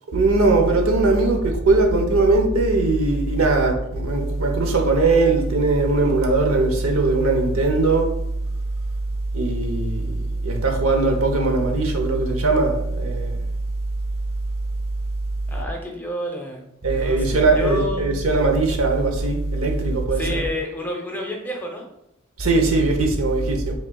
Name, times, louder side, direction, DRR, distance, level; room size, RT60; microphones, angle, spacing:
voice 1, 0.1-8.1 9.3-13.5 16.8-20.4 22.4-23.7, right 3 dB, 80° right, 3 dB, 0.8 m, -20 dB
voice 2, 15.5-16.6 16.9-18.2 20.1-21.9, equal, 10° left, 0 dB, 0.7 m, -30 dB
5.4 x 3.7 x 2.3 m, 0.82 s
head